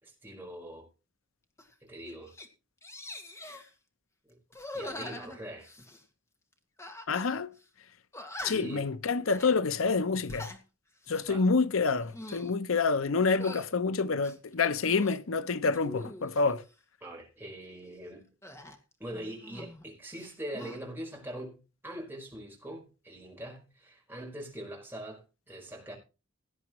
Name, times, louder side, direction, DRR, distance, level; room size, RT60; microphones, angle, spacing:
voice 1, 0.0-0.9 1.8-2.3 4.3-4.4 4.7-5.7 8.5-8.9 11.3-11.4 17.0-18.3 19.0-25.9, right 1 dB, 10° right, 4.8 m, -43 dB
sound 1, 1.6-1.7 2.1-2.5 2.8-3.7 4.5-6.0 6.8-7.3 7.6-7.7 8.1-8.8 9.2-9.5 10.1-10.6 11.0-11.3 11.9-12.5 13.3-13.7 14.2-15.2 15.7-16.6 18.4-19.8 20.1-20.8, left 1 dB, 15° left, 1.7 m, -44 dB
voice 2, 7.1-7.5 8.4-10.5 11.1-16.6, left 4 dB, 90° left, 0.7 m, -27 dB
17.0 x 10.5 x 3.1 m
head